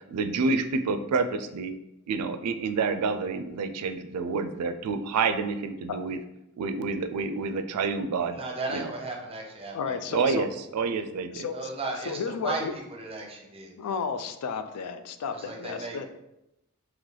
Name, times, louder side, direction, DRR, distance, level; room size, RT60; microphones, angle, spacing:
voice 1, 0.1-1.7 2.1-6.2 6.6-8.4 8.7-8.9 10.1-10.5 10.7-11.5, right 4 dB, 85° right, 9 dB, 0.4 m, -28 dB
voice 2, 8.3-9.9 10.3-10.4 11.5-13.7 15.3-16.1, right 2 dB, 25° right, 1 dB, 0.7 m, -35 dB
voice 3, 9.7-10.5 11.3-12.7 13.8-16.0, left 5 dB, 80° left, 8 dB, 0.4 m, -33 dB
3.7 x 3.0 x 3.2 m, 0.89 s
head